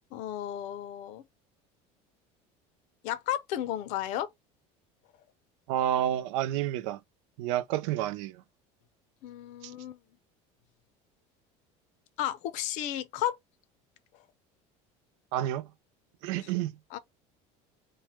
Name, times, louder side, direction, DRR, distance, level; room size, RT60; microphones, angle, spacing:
voice 1, 0.1-1.2 3.0-4.3 9.2-10.0 12.2-13.4 16.9-17.0, left 12 dB, 50° left, 0.5 m, -33 dB
voice 2, 5.7-7.0 7.4-8.4 9.6-9.7 15.3-15.7 16.2-16.7, right 12 dB, 85° right, 0.4 m, -29 dB
3.2 x 2.2 x 3.0 m
cardioid pair, 175°, 16 cm